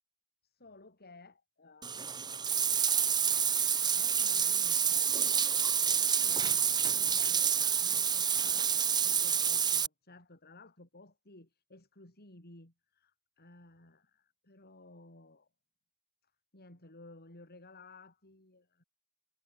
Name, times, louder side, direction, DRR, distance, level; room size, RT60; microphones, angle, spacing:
voice 1, 0.4-2.8 3.7-15.5 16.5-18.8, left 2 dB, 45° left, 5.8 m, -56 dB
Bathtub (filling or washing), 1.8-9.9, right 7 dB, 20° right, 0.8 m, -28 dB
head